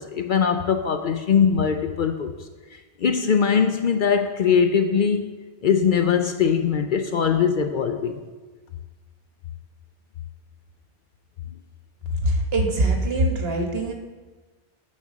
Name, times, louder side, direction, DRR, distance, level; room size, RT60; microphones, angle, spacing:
voice 1, 0.0-2.3 3.0-5.2 5.6-8.1, left 7 dB, 60° left, 6 dB, 0.6 m, -21 dB
voice 2, 12.2-13.9, right 1 dB, 65° right, 2 dB, 1.3 m, -22 dB
9.4 x 4.3 x 6.2 m, 1.3 s
omnidirectional pair, 1.1 m